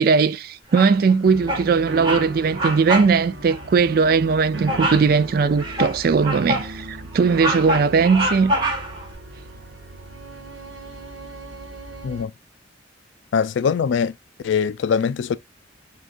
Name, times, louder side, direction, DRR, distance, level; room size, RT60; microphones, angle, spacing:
voice 1, 0.0-8.5, right 5 dB, 50° right, 0.3 m, -19 dB
Bird vocalization bird call bird song, 0.7-1.1 1.5-1.7 2.0-2.3 2.5-3.1 3.5-3.6 4.7-5.1 5.6-6.7 7.1-9.1, right 1 dB, 25° right, 1.1 m, -25 dB
sound 1, 1.2-12.3, right 1 dB, 80° right, 0.8 m, -37 dB
voice 2, 13.3-14.1 14.4-15.4, left 6 dB, 75° left, 0.3 m, -22 dB
6.3 x 2.4 x 2.5 m
head